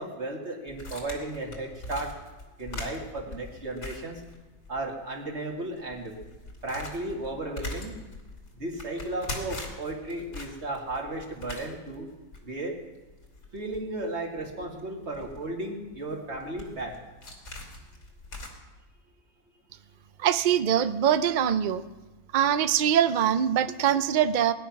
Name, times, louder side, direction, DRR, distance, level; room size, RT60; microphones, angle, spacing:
voice 1, 0.0-2.2 2.6-4.2 4.7-6.2 6.6-8.0 8.5-12.1 12.4-12.8 13.5-17.0, right 2 dB, 45° right, 1 dB, 2.4 m, -34 dB
sound 1, 0.7-4.8 5.1-5.2 5.7-18.5, left 2 dB, 75° left, 3.0 m, -42 dB
voice 2, 20.2-21.8 22.3-24.5, right 9 dB, 80° right, 12 dB, 0.4 m, -23 dB
19.5 x 10.0 x 5.9 m, 1.2 s
omnidirectional pair, 1.6 m